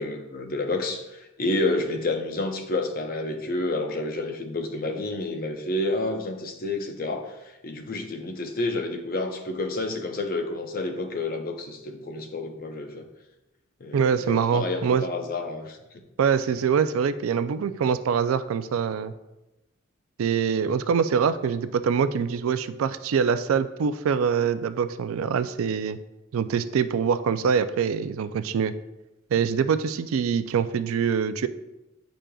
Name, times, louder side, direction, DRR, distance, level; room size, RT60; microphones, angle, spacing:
voice 1, 0.0-7.3 7.6-13.0 13.8-15.8, left 2 dB, 45° left, 4 dB, 0.7 m, -29 dB
voice 2, 13.9-15.0 16.2-19.1 20.2-26.0 26.3-28.7 29.3-31.5, right 6 dB, 75° right, 12 dB, 0.3 m, -24 dB
8.8 x 5.1 x 2.3 m, 0.96 s
head